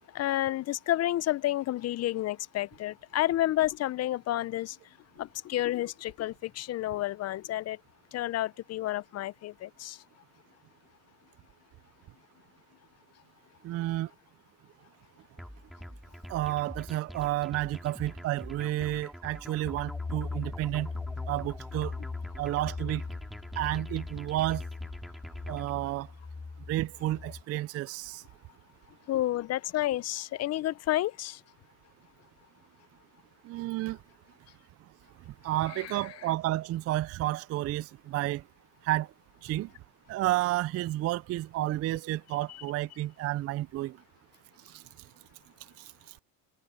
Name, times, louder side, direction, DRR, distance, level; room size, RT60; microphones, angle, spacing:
voice 1, 0.1-4.8 5.2-7.8 8.1-10.0 29.1-31.4 35.7-36.3 42.5-42.6, left 14 dB, 35° left, 0.5 m, -30 dB
voice 2, 13.6-14.1 16.3-20.9 21.3-21.9 22.4-23.0 23.6-24.6 25.5-26.1 26.7-28.2 33.4-34.0 35.4-38.4 38.8-39.1 39.4-39.7 40.1-44.0 44.7-44.8 45.8-45.9, right 15 dB, 35° right, 0.4 m, -31 dB
sound 1, 15.4-25.7, equal, ahead, 3.2 m, -45 dB
sound 2, 19.6-27.4, left 4 dB, 20° left, 3.4 m, -40 dB
supercardioid pair, 95°, 47 cm